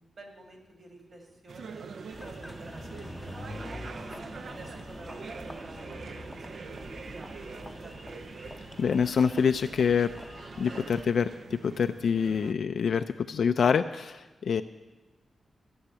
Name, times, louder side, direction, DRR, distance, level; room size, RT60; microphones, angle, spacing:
voice 1, 0.0-4.0 4.4-8.3, right 2 dB, 45° right, 1 dB, 2.4 m, -51 dB
sound 1, 1.5-12.5, right 5 dB, 65° right, 0.5 m, -44 dB
Engine, 2.1-11.1, left 1 dB, 10° left, 0.6 m, -44 dB
voice 2, 8.8-10.1 10.6-14.6, left 6 dB, 70° left, 8 dB, 0.4 m, -26 dB
13.5 x 7.2 x 9.7 m, 1.1 s
wide cardioid pair, 155°, 0 cm